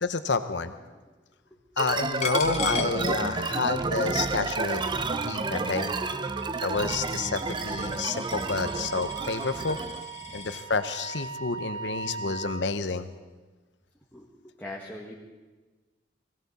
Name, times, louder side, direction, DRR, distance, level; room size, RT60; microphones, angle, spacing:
voice 1, 0.0-0.7 1.8-4.9 5.2-5.9 6.6-9.8 10.3-13.1, left 4 dB, 70° left, 10 dB, 0.8 m, -29 dB
sound 1, 1.8-10.0, right 3 dB, 25° right, 0.5 m, -30 dB
Coin (dropping), 2.2-3.7 4.1-10.7, left 5 dB, 35° left, 0.9 m, -39 dB
Wind instrument woodwind instrument, 3.2-12.6, right 6 dB, 90° right, 1.8 m, -40 dB
voice 2, 14.6-15.2, left 1 dB, 10° left, -4 dB, 1.5 m, -40 dB
20.5 x 16.5 x 4.2 m, 1.3 s
head